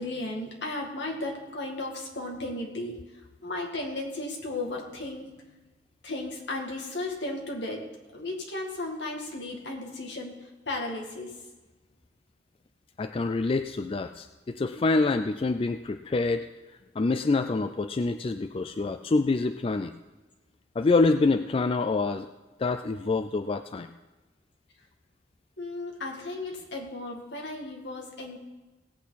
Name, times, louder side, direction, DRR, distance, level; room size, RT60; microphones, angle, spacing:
voice 1, 0.0-5.3 6.0-7.8 8.1-11.3 25.6-28.4, left 2 dB, 75° left, 0 dB, 2.3 m, -35 dB
voice 2, 13.0-16.5 17.0-19.9 20.8-22.3 22.6-23.9, left 3 dB, 30° left, 9 dB, 0.3 m, -26 dB
17.5 x 8.4 x 4.1 m, 1.1 s
head